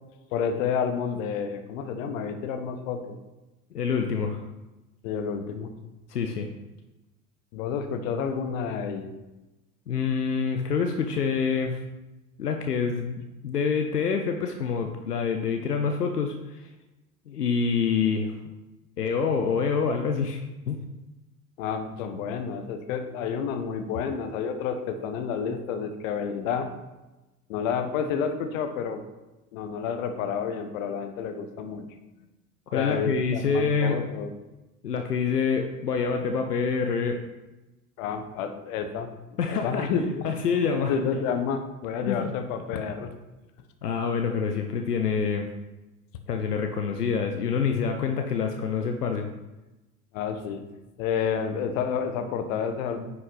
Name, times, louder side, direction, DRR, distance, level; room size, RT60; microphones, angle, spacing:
voice 1, 0.3-3.2 5.0-5.7 7.5-9.1 21.6-26.7 27.5-29.0 29.5-31.8 32.7-34.3 38.0-39.1 39.5-40.3 40.9-43.1 50.1-50.6 51.0-53.1, left 6 dB, 60° left, 8 dB, 1.2 m, -30 dB
voice 2, 3.7-4.4 6.1-6.5 9.9-11.8 12.4-16.7 17.3-18.3 19.0-20.8 32.7-34.0 34.8-37.2 39.4-40.9 42.1-42.3 43.8-45.5 46.3-49.3, left 5 dB, 85° left, 5 dB, 0.8 m, -26 dB
9.7 x 5.8 x 4.0 m, 1.0 s
figure-of-eight pair, 75°, 46 cm